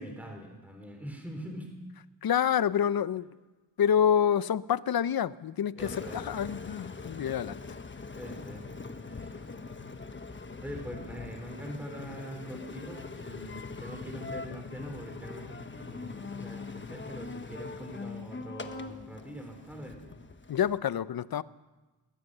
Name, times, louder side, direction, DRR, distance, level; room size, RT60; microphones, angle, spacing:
voice 1, 0.0-1.7 5.8-6.2 8.1-8.7 9.1-9.4 10.6-20.0, equal, 5° right, 3 dB, 3.9 m, -43 dB
voice 2, 2.2-3.2 3.8-7.6 20.5-21.4, left 9 dB, 55° left, 17 dB, 0.7 m, -27 dB
Engine, 5.8-20.8, left 4 dB, 25° left, 1.3 m, -42 dB
21.5 x 18.0 x 6.8 m, 1.2 s
cardioid pair, 95°, 43 cm